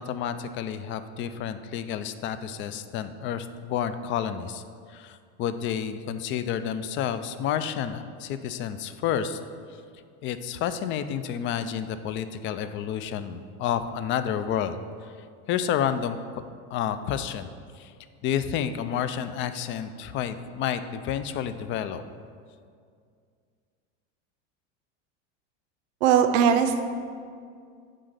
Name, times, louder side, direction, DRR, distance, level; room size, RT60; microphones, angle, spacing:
voice 1, 0.0-4.6 4.9-9.4 10.2-14.8 15.5-16.4 16.7-17.5 17.8-17.9 18.2-22.0, left 9 dB, 35° left, 11 dB, 0.4 m, -30 dB
voice 2, 26.0-26.8, right 8 dB, 75° right, 8 dB, 0.8 m, -19 dB
7.5 x 4.0 x 6.7 m, 2.2 s
supercardioid pair, 120°, 35 cm